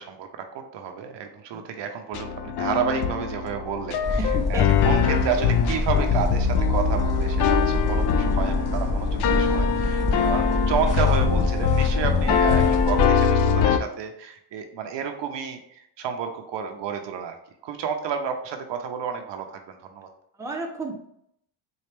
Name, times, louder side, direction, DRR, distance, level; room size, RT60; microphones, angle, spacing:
voice 1, 0.0-15.6 16.0-17.4 17.6-20.1, right 7 dB, 60° right, 5 dB, 0.7 m, -31 dB
sound 1, 2.1-13.8, left 7 dB, 55° left, 0.5 m, -23 dB
sound 2, 4.0-13.1, left 2 dB, 40° left, 1.3 m, -26 dB
voice 2, 4.3-5.0 12.1-12.7 20.4-20.9, right 2 dB, 5° right, 0 dB, 0.7 m, -34 dB
4.3 x 2.3 x 3.3 m, 0.72 s
cardioid pair, 95°, 50 cm